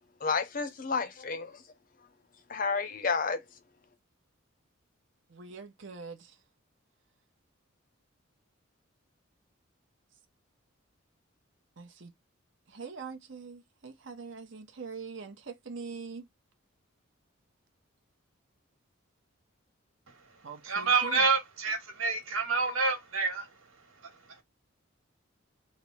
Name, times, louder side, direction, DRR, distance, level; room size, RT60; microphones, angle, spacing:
voice 1, 0.2-1.6 2.5-3.4, left 5 dB, 40° left, 0.5 m, -30 dB
voice 2, 5.3-6.4 11.8-12.1 12.7-16.3 20.4-21.3, right 5 dB, 60° right, 0.8 m, -43 dB
voice 3, 20.1-24.4, right 4 dB, 85° right, 1.5 m, -29 dB
3.3 x 2.1 x 4.3 m
head